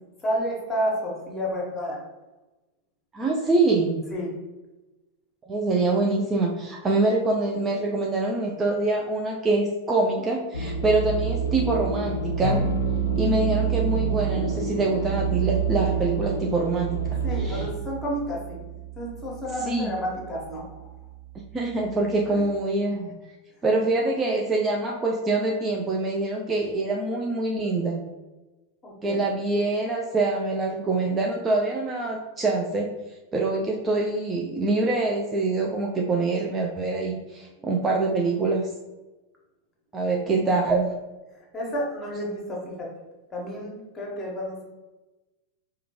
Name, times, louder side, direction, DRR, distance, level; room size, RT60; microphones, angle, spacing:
voice 1, 0.2-2.0 4.1-4.3 17.2-18.6 19.0-20.9 22.3-22.4 28.8-29.2 37.6-37.7 41.5-42.9 43.3-44.6, equal, 15° left, -2 dB, 1.3 m, -30 dB
voice 2, 3.1-4.0 5.4-12.6 13.2-17.0 17.4-17.7 19.6-19.9 21.5-23.1 23.6-28.0 29.0-32.9 33.3-38.7 39.9-40.9, right 2 dB, 20° right, -1 dB, 0.5 m, -25 dB
sound 1, 10.5-17.7, right 5 dB, 75° left, 0.4 m, -29 dB
sound 2, 12.4-22.5, right 6 dB, 40° left, 0.7 m, -32 dB
4.8 x 2.4 x 3.0 m, 1.1 s
figure-of-eight pair, 90°, 0 cm